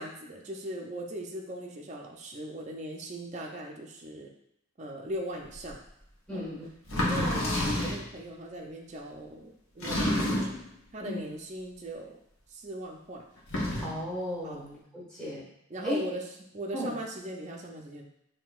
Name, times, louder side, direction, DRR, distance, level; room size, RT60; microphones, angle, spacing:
voice 1, 0.0-4.3 4.8-5.8 6.3-6.4 6.9-10.5 10.9-12.2 12.5-13.2 14.4-14.6 15.7-16.2 16.5-18.1, right 1 dB, 35° right, 0 dB, 0.5 m, -39 dB
sound 1, 5.7-5.8 6.9-8.1 9.8-10.7 13.4-14.0, left 1 dB, 85° left, 1.0 m, -29 dB
voice 2, 6.3-6.7 7.1-7.3 11.0-11.3 13.8-15.5 15.8-16.1 16.7-16.9, left 1 dB, 5° left, -7 dB, 1.5 m, -35 dB
5.5 x 2.7 x 2.4 m, 0.79 s
head